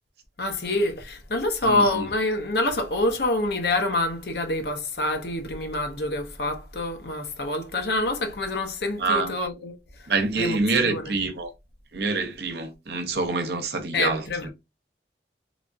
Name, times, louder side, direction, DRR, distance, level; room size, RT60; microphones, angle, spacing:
voice 1, 0.4-10.1 10.4-11.1 13.9-14.5, left 2 dB, 65° left, 0.7 m, -26 dB
voice 2, 1.6-2.1 9.0-9.3 10.1-11.5 11.9-14.5, right 3 dB, 65° right, 0.7 m, -26 dB
3.3 x 2.4 x 2.5 m
head